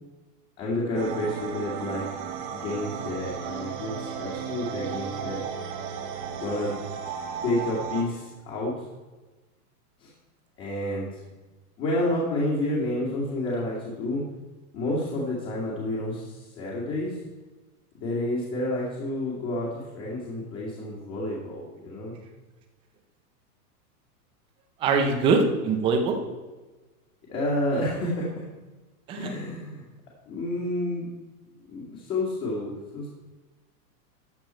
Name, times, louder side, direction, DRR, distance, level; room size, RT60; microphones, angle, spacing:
voice 1, 0.6-2.0 2.5-5.4 6.4-6.7 7.4-8.7 10.0-10.1 10.6-11.1 11.8-14.2 14.7-17.2 18.0-22.1 27.3-28.3 29.1-29.8 30.3-31.1 31.7-33.1, left 1 dB, 25° left, -5 dB, 2.4 m, -29 dB
sound 1, 0.9-8.0, right 7 dB, 30° right, 1.1 m, -34 dB
voice 2, 24.8-26.2 29.1-29.3, right 4 dB, 10° right, 5 dB, 0.5 m, -22 dB
13.5 x 7.0 x 4.4 m, 1.2 s
supercardioid pair, 160°, 46 cm